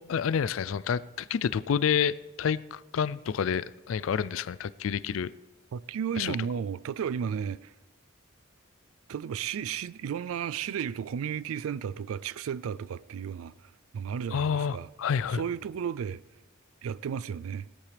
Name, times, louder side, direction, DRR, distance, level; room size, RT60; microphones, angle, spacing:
voice 1, 0.0-5.3 6.2-6.4 14.3-15.4, left 7 dB, 70° left, 0.4 m, -29 dB
voice 2, 5.7-7.7 9.1-14.9 15.3-16.2 16.8-17.7, right 7 dB, 80° right, 0.3 m, -33 dB
18.5 x 13.5 x 3.3 m
head